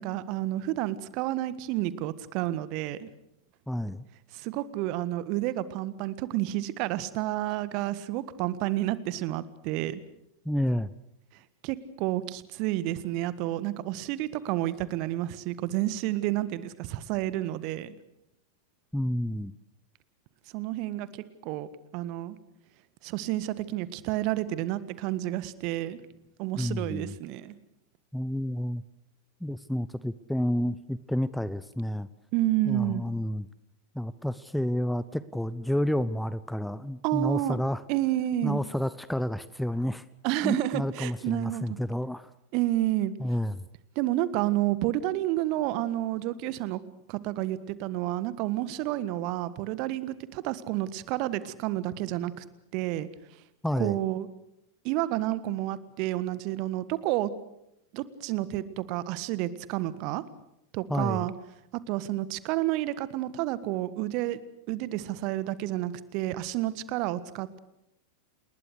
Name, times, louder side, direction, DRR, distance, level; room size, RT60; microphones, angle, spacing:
voice 1, 0.0-3.1 4.3-10.0 11.6-18.0 20.5-21.1 21.4-22.4 23.0-26.0 26.4-27.5 32.3-33.0 37.0-37.6 37.9-38.6 40.2-41.6 42.5-43.1 43.9-46.8 47.1-52.4 52.7-53.1 53.8-54.3 54.8-57.3 57.9-60.2 60.7-61.3 61.7-64.4 64.7-67.6, right 15 dB, 45° right, 16 dB, 1.5 m, -30 dB
voice 2, 3.7-4.0 10.4-10.9 18.9-19.5 26.6-27.2 28.1-28.8 29.4-32.1 32.7-33.5 33.9-37.8 38.4-40.0 40.4-42.3 43.2-43.6 53.6-54.0 60.9-61.3, left 1 dB, ahead, 16 dB, 0.8 m, -30 dB
29.0 x 20.5 x 6.6 m, 0.82 s
figure-of-eight pair, 90°, 0 cm